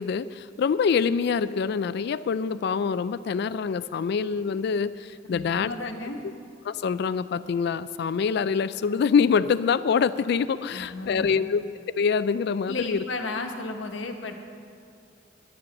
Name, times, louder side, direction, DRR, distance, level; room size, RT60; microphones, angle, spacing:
voice 1, 0.0-5.7 6.2-6.3 6.6-11.6 12.0-13.0, left 6 dB, 60° left, 15 dB, 0.3 m, -25 dB
voice 2, 5.3-6.2 10.7-11.4 12.7-14.4, left 2 dB, 85° left, 4 dB, 1.1 m, -34 dB
11.0 x 9.6 x 7.1 m, 2.5 s
head